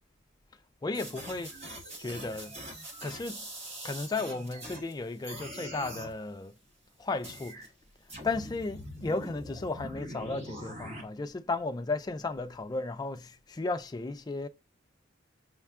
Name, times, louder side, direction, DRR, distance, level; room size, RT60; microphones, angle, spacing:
voice 1, 0.8-1.6 2.0-2.7 3.0-3.4 3.8-6.5 7.0-7.7 8.2-14.5, left 3 dB, 20° left, 0.3 m, -34 dB
sound 1, 0.9-4.9 5.2-6.1 7.2-7.7 8.1-11.0, equal, 30° right, 1.0 m, -43 dB
5.4 x 2.2 x 2.4 m
head